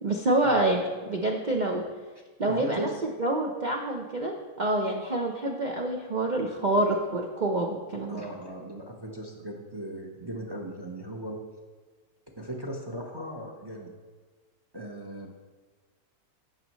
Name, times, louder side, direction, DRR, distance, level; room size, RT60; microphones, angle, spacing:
voice 1, 0.0-1.8 2.4-2.9 3.2-4.3 4.6-8.2, right 2 dB, 65° right, 1 dB, 0.4 m, -27 dB
voice 2, 2.5-3.0 8.1-11.4 12.4-13.9 14.7-15.3, right 1 dB, 20° right, 0 dB, 0.6 m, -37 dB
14.0 x 6.4 x 3.1 m, 1.4 s
omnidirectional pair, 1.9 m